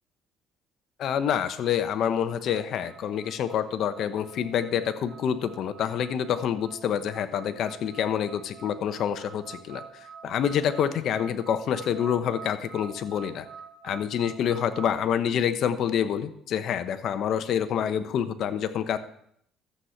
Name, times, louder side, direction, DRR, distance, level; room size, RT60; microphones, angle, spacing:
voice 1, 1.0-13.5 13.8-19.0, left 9 dB, 60° left, 11 dB, 1.0 m, -27 dB
sound 1, 2.5-14.9, right 6 dB, 65° right, 1.3 m, -47 dB
13.0 x 8.1 x 5.8 m, 0.69 s
cardioid pair, 110°, 0 cm